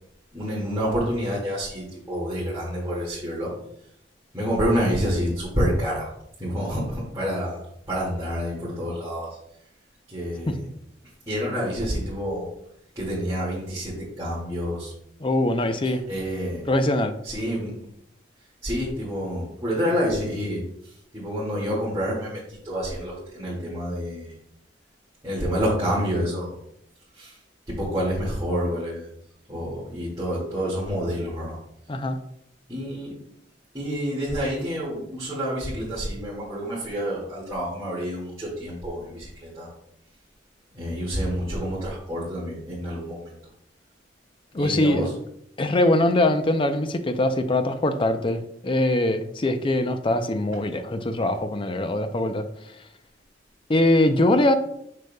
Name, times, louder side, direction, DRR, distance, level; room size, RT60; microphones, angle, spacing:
voice 1, 0.3-3.5 4.3-6.1 6.4-7.6 7.9-9.3 10.1-10.7 11.3-12.5 13.0-14.9 15.8-16.6 17.2-17.7 18.6-24.3 25.2-26.6 27.1-27.4 27.7-29.1 29.5-31.6 32.7-33.2 33.7-39.7 40.7-43.3 44.6-45.1, equal, 20° right, -9 dB, 2.0 m, -28 dB
voice 2, 15.2-16.0 16.7-17.1 31.9-32.2 44.5-45.1 45.6-52.5 53.7-54.5, left 1 dB, 30° left, 8 dB, 0.5 m, -22 dB
6.8 x 6.4 x 2.3 m, 0.73 s
head